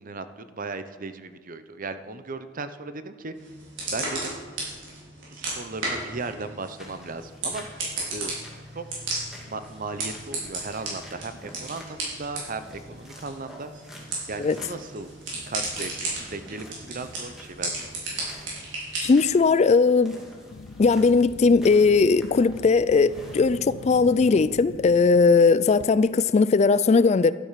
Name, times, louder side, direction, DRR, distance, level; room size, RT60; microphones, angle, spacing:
voice 1, 0.0-3.5 3.9-4.4 5.3-8.4 8.7-8.9 9.5-13.7 14.3-15.1 15.5-17.9, right 3 dB, 45° right, 0.8 m, -36 dB
sound 1, 3.3-19.3, right 2 dB, 65° right, 5.2 m, -35 dB
sound 2, 6.8-24.4, equal, ahead, 2.6 m, -48 dB
voice 2, 19.0-20.2 20.8-27.3, left 4 dB, 35° left, 0.3 m, -19 dB
sound 3, 20.5-26.1, left 3 dB, 75° left, 0.6 m, -42 dB
12.5 x 12.0 x 5.8 m
head